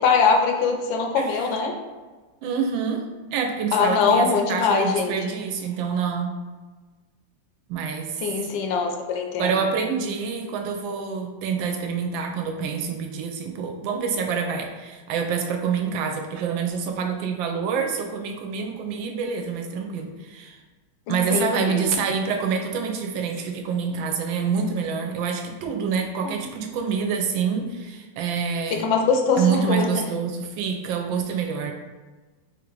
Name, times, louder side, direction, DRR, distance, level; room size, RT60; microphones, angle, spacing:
voice 1, 0.0-1.8 3.7-5.2 8.2-9.6 21.1-21.8 26.2-26.5 28.7-30.0, left 5 dB, 80° left, 3 dB, 1.3 m, -22 dB
voice 2, 2.4-6.4 7.7-8.2 9.4-20.6 21.1-28.8 29.4-31.7, right 6 dB, 80° right, 4 dB, 1.3 m, -27 dB
3.6 x 2.5 x 4.5 m, 1.3 s
omnidirectional pair, 2.1 m